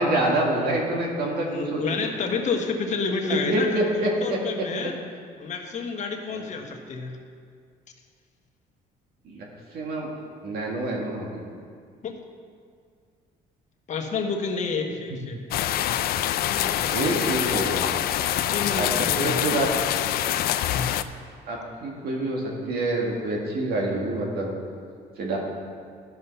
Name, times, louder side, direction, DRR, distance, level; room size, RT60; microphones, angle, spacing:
voice 1, 0.0-2.0 3.3-4.9 6.3-6.5 9.2-9.4 9.7-10.1 10.4-11.4 16.9-17.8 18.8-19.7 21.5-24.5 25.2-25.4, right 1 dB, 65° right, -1 dB, 2.0 m, -26 dB
voice 2, 1.4-4.9 5.4-7.2 12.0-12.2 13.9-15.4 15.7-15.8 16.5-17.3 18.5-19.6 20.0-20.1 20.7-21.0, left 4 dB, 45° left, 2 dB, 1.3 m, -30 dB
sound 1, 15.5-21.0, left 12 dB, 65° left, 0.4 m, -25 dB
12.0 x 5.7 x 5.6 m, 2.1 s
cardioid pair, 110°, 17 cm